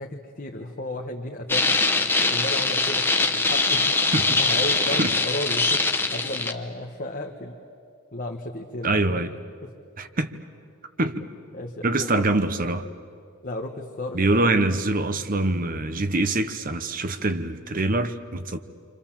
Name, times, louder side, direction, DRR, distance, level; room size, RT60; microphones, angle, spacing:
voice 1, 0.0-4.1 4.4-7.6 8.1-9.2 11.5-12.3 13.4-14.5, left 1 dB, 40° left, 2 dB, 1.2 m, -34 dB
sound 1, 1.5-6.5, left 3 dB, 10° left, 0.9 m, -22 dB
voice 2, 8.8-9.3 10.0-10.3 11.0-11.3 11.8-12.9 14.1-18.6, right 2 dB, 40° right, 10 dB, 0.9 m, -24 dB
29.0 x 25.5 x 7.4 m, 2.4 s
head